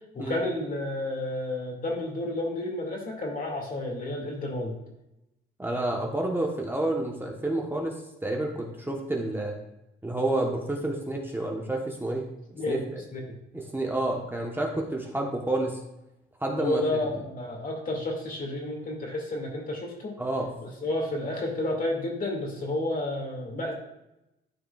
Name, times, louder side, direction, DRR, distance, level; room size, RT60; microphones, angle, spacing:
voice 1, 0.1-4.8 12.6-12.9 13.1-13.2 16.6-20.2 20.6-23.7, left 2 dB, 45° left, 0 dB, 2.4 m, -31 dB
voice 2, 5.6-9.5 10.0-12.2 12.7-12.8 13.5-15.8 16.4-16.8 20.2-20.5, right 1 dB, 10° right, 0 dB, 1.2 m, -29 dB
12.5 x 4.8 x 2.4 m, 0.90 s
cardioid pair, 90°, 20 cm